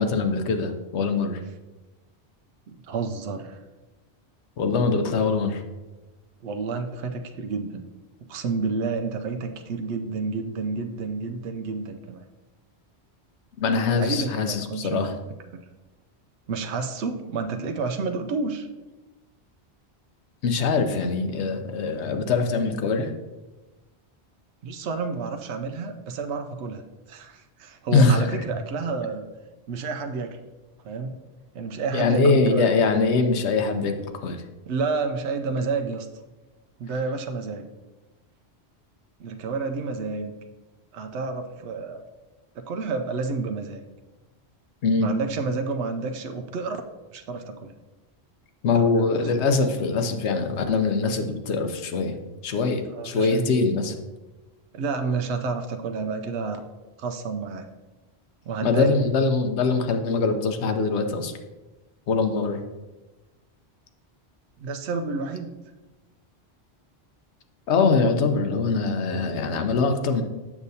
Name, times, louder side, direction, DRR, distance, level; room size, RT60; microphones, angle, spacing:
voice 1, 0.0-1.4 4.6-5.6 13.6-15.1 20.4-23.1 27.9-28.2 31.9-34.4 44.8-45.1 48.6-52.2 52.4-53.9 58.6-61.3 62.1-62.6 67.7-70.2, left 4 dB, 90° left, 6 dB, 1.0 m, -23 dB
voice 2, 2.7-3.6 6.4-7.9 8.3-12.3 13.7-15.2 16.5-18.7 24.6-26.8 27.1-29.3 29.7-30.4 30.8-31.2 31.5-32.7 34.7-36.1 36.8-37.7 39.2-40.3 40.9-42.0 42.6-43.8 45.0-46.8 47.1-47.7 48.7-48.9 52.9-53.5 54.7-56.6 57.0-57.6 58.4-58.9 64.6-65.5, right 4 dB, 85° right, 6 dB, 0.9 m, -30 dB
7.2 x 6.6 x 2.7 m, 1.1 s
omnidirectional pair, 1.1 m